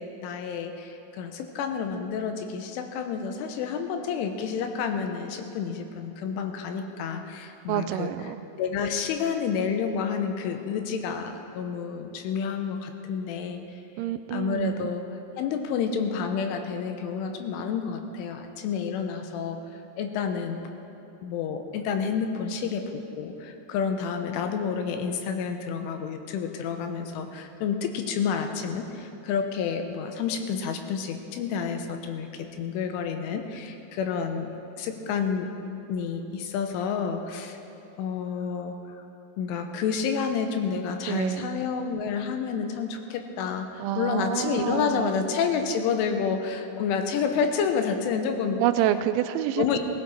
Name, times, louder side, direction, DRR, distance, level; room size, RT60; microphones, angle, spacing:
voice 1, 0.0-8.1 8.5-13.6 14.3-15.0 15.4-20.6 21.2-34.5 34.8-35.6 35.9-37.6 38.0-39.0 39.4-48.6 49.6-49.8, left 6 dB, 90° left, 6 dB, 3.5 m, -29 dB
voice 2, 7.7-8.4 14.0-14.9 41.1-41.5 43.8-45.1 48.6-49.8, right 12 dB, 85° right, 10 dB, 2.8 m, -28 dB
18.5 x 16.0 x 4.3 m, 2.8 s
omnidirectional pair, 5.5 m